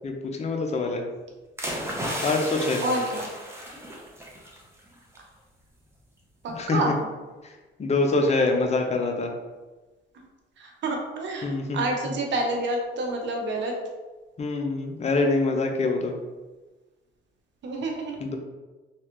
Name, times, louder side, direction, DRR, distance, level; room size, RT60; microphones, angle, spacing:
voice 1, 0.0-1.0 2.2-2.8 6.6-6.9 7.8-9.3 11.4-12.1 14.4-16.1 18.2-18.4, left 3 dB, 35° left, 2 dB, 0.5 m, -25 dB
sound 1, 1.6-4.6 4.9-5.2, equal, 15° right, 0.7 m, -33 dB
voice 2, 2.8-3.3 6.4-6.9 10.1-10.2 10.6-13.7 17.6-18.2, right 2 dB, 65° right, 1 dB, 0.7 m, -28 dB
3.3 x 2.3 x 2.9 m, 1.2 s
cardioid pair, 90°, 20 cm